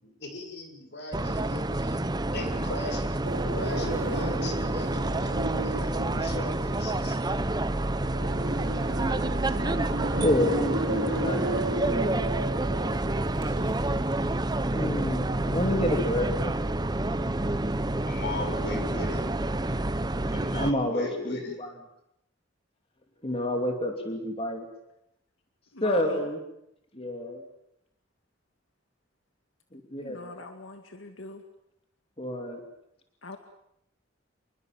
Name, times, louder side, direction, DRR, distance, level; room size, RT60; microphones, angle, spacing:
voice 1, 0.0-2.0 2.3-3.1 3.5-7.2 18.1-19.2 20.3-21.6, left 2 dB, 60° left, 4 dB, 6.9 m, -38 dB
sound 1, 1.1-20.7, right 1 dB, 20° right, 0.9 m, -28 dB
sound 2, 3.2-14.8, right 2 dB, 70° right, 4.1 m, -35 dB
voice 2, 10.2-11.7 12.0-12.2 14.7-16.6 18.7-19.0 20.5-21.7 23.2-24.7 25.8-26.4 26.9-27.4 29.7-30.3 32.2-32.6, left 1 dB, 30° left, 3 dB, 2.8 m, -29 dB
voice 3, 25.7-26.2 30.0-31.4 33.2-33.4, left 3 dB, 85° left, 5 dB, 2.2 m, -42 dB
27.0 x 21.5 x 7.6 m, 0.79 s
head